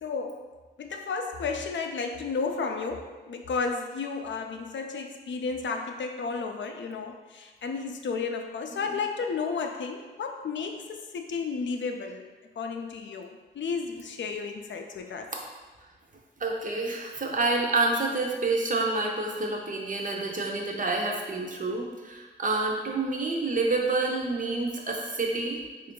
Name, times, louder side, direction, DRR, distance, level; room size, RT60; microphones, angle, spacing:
voice 1, 0.0-0.4 0.8-12.3 12.6-15.3, left 4 dB, 80° left, 4 dB, 0.4 m, -33 dB
voice 2, 16.4-25.6, right 3 dB, 45° right, 0 dB, 0.6 m, -28 dB
3.7 x 2.5 x 3.7 m, 1.3 s
wide cardioid pair, 120°, 19 cm